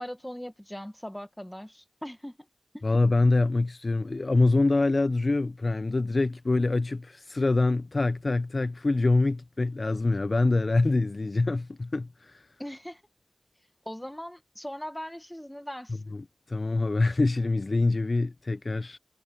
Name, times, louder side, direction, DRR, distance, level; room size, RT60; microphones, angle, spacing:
voice 1, 0.0-2.4 2.7-2.8 12.6-13.0 13.9-16.0, equal, 5° left, 1.8 m, -39 dB
voice 2, 2.8-12.4 16.5-19.0, left 2 dB, 55° left, 0.5 m, -25 dB
wide cardioid pair, 55°, 0 cm